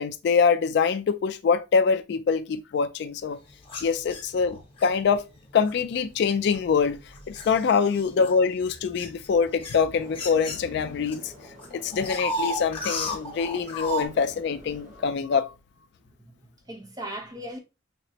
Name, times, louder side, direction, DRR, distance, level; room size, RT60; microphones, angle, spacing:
voice 1, 0.0-3.4 3.8-5.2 5.5-7.0 7.3-11.3 11.7-15.5, left 5 dB, 60° left, 0.3 m, -24 dB
sound 1, 3.6-4.9 5.7-5.9 6.5-11.1 11.4-14.1, left 1 dB, 30° left, 0.9 m, -34 dB
sound 2, 9.9-15.1, equal, 40° right, 1.0 m, -49 dB
voice 2, 16.0-17.6, right 1 dB, 20° right, 0.7 m, -39 dB
5.8 x 2.0 x 2.7 m
head